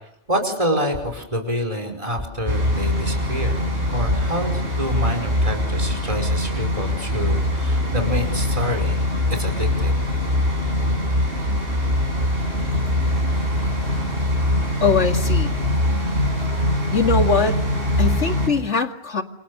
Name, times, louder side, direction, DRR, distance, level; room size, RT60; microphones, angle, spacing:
voice 1, 0.3-9.1 9.3-9.9, equal, 25° right, 4 dB, 5.3 m, -27 dB
sound 1, 2.5-18.5, left 1 dB, 50° right, 7.5 m, -22 dB
voice 2, 14.8-15.5 16.9-17.6 18.0-19.2, left 4 dB, 65° left, 5 dB, 2.5 m, -21 dB
28.5 x 28.5 x 6.8 m, 0.75 s
omnidirectional pair, 1.3 m